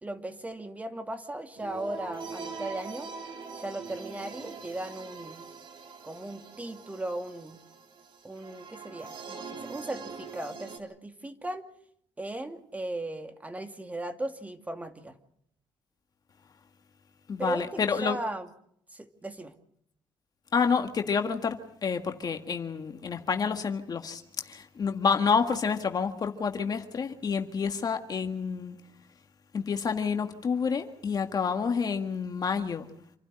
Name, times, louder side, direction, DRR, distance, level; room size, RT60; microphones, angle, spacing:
voice 1, 0.0-3.1 3.5-5.4 6.0-7.6 8.2-11.7 12.2-15.2 17.4-18.5 18.9-19.5, right 2 dB, 15° right, 2.4 m, -37 dB
sound 1, 1.6-10.8, right 4 dB, 65° right, 3.7 m, -43 dB
voice 2, 17.3-18.2 20.5-28.8 29.5-32.9, left 6 dB, 45° left, 1.8 m, -29 dB
28.0 x 12.0 x 9.9 m
cardioid pair, 85°, 9 cm